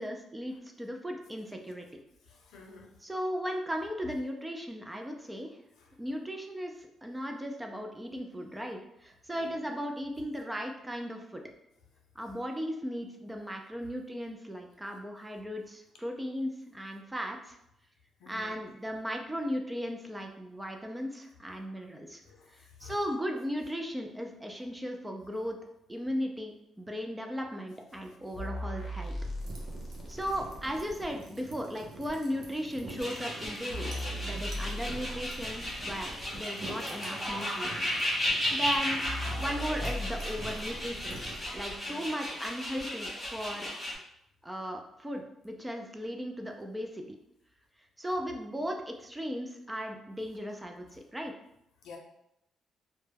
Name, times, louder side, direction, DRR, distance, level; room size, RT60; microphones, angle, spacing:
voice 1, 0.0-2.0 3.0-5.6 6.0-11.4 12.2-17.6 18.3-22.2 22.5-25.6 25.9-29.1 30.1-34.0 34.2-38.0 38.5-39.0 39.4-41.2 41.5-43.7 44.4-47.1 48.0-51.3, equal, 10° right, 3 dB, 0.3 m, -36 dB
voice 2, 2.3-3.0 5.8-5.9 9.3-9.6 18.2-18.6 21.7-21.8 22.3-23.0 41.8-42.2 51.8-52.0, left 4 dB, 80° left, 1 dB, 0.5 m, -51 dB
sound 1, 28.4-31.1 32.1-32.2 33.0-33.1 33.4-36.4 37.3-37.4 38.3-38.4 38.7-38.8 39.0-41.8 42.8-42.9, equal, 40° left, 0.7 m, -38 dB
sound 2, 29.4-41.4, right 2 dB, 70° right, 0.6 m, -48 dB
sound 3, 33.0-43.9, left 1 dB, 20° left, 1.1 m, -35 dB
2.2 x 2.1 x 3.2 m, 0.81 s
cardioid pair, 90°, 0 cm